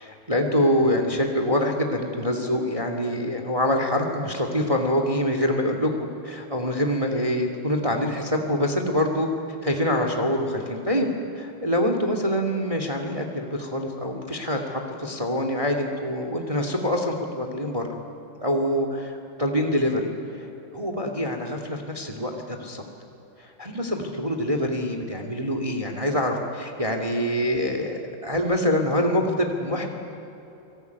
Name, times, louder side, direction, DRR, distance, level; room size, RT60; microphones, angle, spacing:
voice 1, 0.0-5.9 6.2-9.3 9.6-17.8 18.4-20.1 20.4-20.5 20.7-22.8 23.4-29.9, equal, 20° right, 4 dB, 1.0 m, -25 dB
30.0 x 20.0 x 9.5 m, 3.0 s
omnidirectional pair, 5.0 m